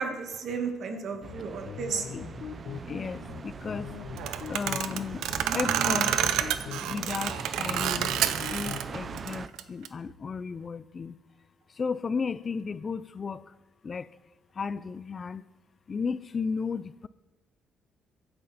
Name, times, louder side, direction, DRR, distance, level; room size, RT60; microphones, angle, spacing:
voice 1, 0.0-2.1, right 5 dB, 55° right, 1.9 m, -33 dB
sound 1, 0.9-8.9, left 9 dB, 80° left, 0.9 m, -42 dB
sound 2, 1.2-9.5, right 6 dB, 35° right, 0.5 m, -40 dB
voice 2, 2.8-3.9 4.5-5.2 5.5-6.2 6.8-8.1 8.5-11.2 11.7-13.5 13.8-14.1 14.5-15.4 15.9-17.1, left 5 dB, 30° left, 0.5 m, -34 dB
sound 3, 4.2-8.8 9.1-9.9, right 10 dB, 90° right, 0.8 m, -29 dB
23.0 x 10.5 x 4.3 m
cardioid pair, 135°, 0 cm